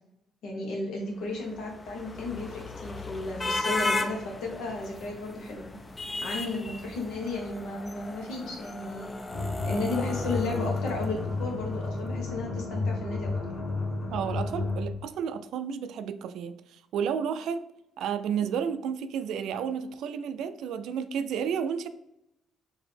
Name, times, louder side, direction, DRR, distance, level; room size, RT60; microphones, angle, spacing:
voice 1, 0.4-5.8 6.2-9.1 9.6-13.3, left 2 dB, 80° left, 0 dB, 1.1 m, -34 dB
sound 1, 1.3-11.6, left 2 dB, 25° left, 0.4 m, -36 dB
sound 2, 9.3-15.0, left 3 dB, 40° left, 1.0 m, -32 dB
voice 2, 14.1-17.6 18.0-21.9, right 7 dB, 80° right, 11 dB, 0.3 m, -31 dB
4.0 x 2.7 x 3.3 m, 0.81 s
cardioid pair, 90°, 0 cm